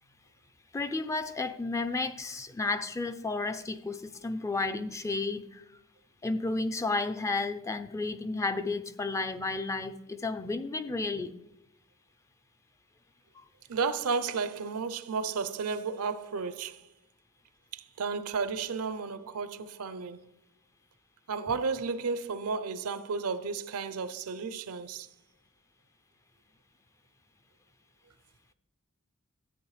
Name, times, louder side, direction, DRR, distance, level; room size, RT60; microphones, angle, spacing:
voice 1, 0.7-5.6 6.2-11.4 13.3-13.4, left 3 dB, 15° left, 0.4 m, -32 dB
voice 2, 13.7-16.9 17.7-20.2 21.3-25.1, right 5 dB, 70° right, 0.6 m, -33 dB
13.5 x 8.9 x 3.2 m
head